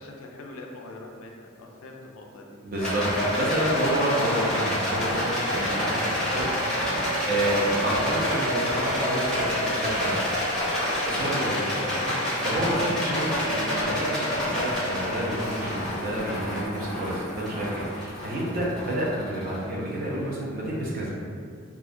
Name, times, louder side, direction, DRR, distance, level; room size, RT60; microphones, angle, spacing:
voice 1, 0.0-2.6, left 2 dB, 70° left, 0 dB, 0.3 m, -43 dB
voice 2, 2.6-6.5 6.9-10.2 11.1-21.1, right 1 dB, 40° right, -5 dB, 0.5 m, -29 dB
Rattle, 2.8-20.1, equal, 5° left, 0.5 m, -28 dB
2.4 x 2.1 x 2.4 m, 2.1 s
head